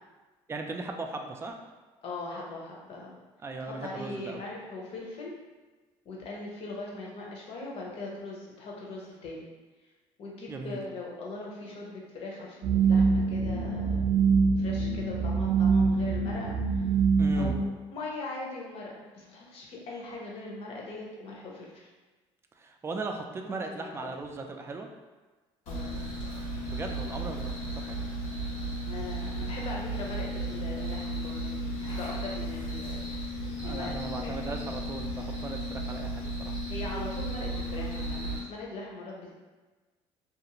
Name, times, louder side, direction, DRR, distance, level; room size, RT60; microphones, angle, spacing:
voice 1, 0.5-1.6 3.4-4.4 10.5-10.8 17.2-17.6 22.6-24.9 26.7-27.5 27.7-28.0 33.6-36.6, right 3 dB, 20° right, 4 dB, 0.3 m, -37 dB
voice 2, 2.0-3.2 3.6-5.3 6.0-9.5 10.2-14.0 14.6-17.0 17.3-21.9 23.4-24.1 25.7-26.0 28.8-33.0 33.6-34.4 36.7-39.3, left 2 dB, 60° left, -3 dB, 0.8 m, -40 dB
sound 1, 12.6-17.6, right 5 dB, 85° right, 0.4 m, -24 dB
sound 2, 25.7-38.4, right 1 dB, 85° left, 1.1 m, -34 dB
2.4 x 2.4 x 2.9 m, 1.3 s
cardioid pair, 100°, 11 cm